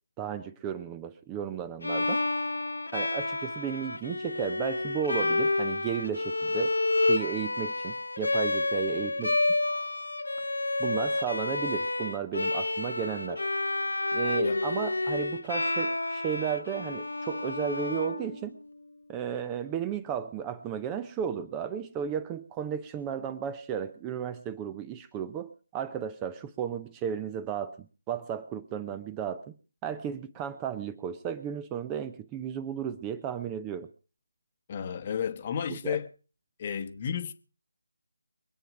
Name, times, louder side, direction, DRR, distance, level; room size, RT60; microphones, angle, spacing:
voice 1, 0.2-2.2 2.9-9.5 10.8-13.5 14.1-18.6 19.1-27.8 28.1-29.5 29.8-33.9 35.7-36.0, right 8 dB, 15° right, 0.7 m, -34 dB
Bowed string instrument, 1.8-18.7, left 2 dB, 65° left, 1.1 m, -30 dB
voice 2, 34.7-36.1 36.6-37.3, left 7 dB, 30° left, 1.1 m, -32 dB
24.0 x 9.2 x 4.9 m
figure-of-eight pair, 155°, 0 cm